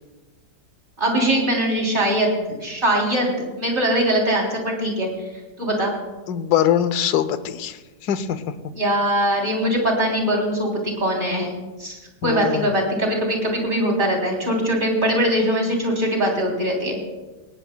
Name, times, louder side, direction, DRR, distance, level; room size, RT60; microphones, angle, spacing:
voice 1, 1.0-5.1 5.6-5.9 8.7-11.5 11.8-17.0, right 1 dB, 30° right, 0 dB, 3.5 m, -22 dB
voice 2, 6.3-7.8 8.0-8.7 12.2-12.7, left 10 dB, 80° left, 13 dB, 1.3 m, -22 dB
18.5 x 17.5 x 2.2 m, 1.2 s
omnidirectional pair, 1.7 m